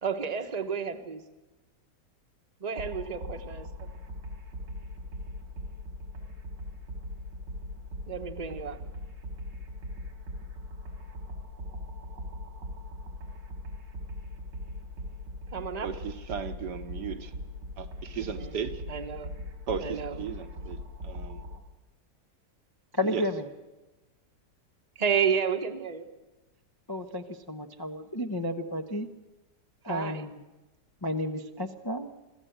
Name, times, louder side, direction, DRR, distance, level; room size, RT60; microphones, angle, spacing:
voice 1, 0.0-1.2 2.6-3.9 8.1-8.8 15.5-15.9 18.2-18.6 18.9-19.3 19.8-20.2 24.9-26.1 29.9-30.3, right 7 dB, 25° right, 8 dB, 1.0 m, -31 dB
sound 1, 2.8-21.6, left 1 dB, 90° right, 3.5 m, -40 dB
voice 2, 15.8-17.3 17.8-18.8 19.7-20.8 21.0-21.4 23.1-23.2, right 7 dB, 70° right, 8 dB, 1.7 m, -36 dB
voice 3, 22.9-23.5 26.9-29.1 29.8-30.4 31.0-32.1, left 1 dB, 20° left, 3 dB, 0.6 m, -32 dB
25.0 x 15.0 x 8.0 m, 1.1 s
omnidirectional pair, 1.9 m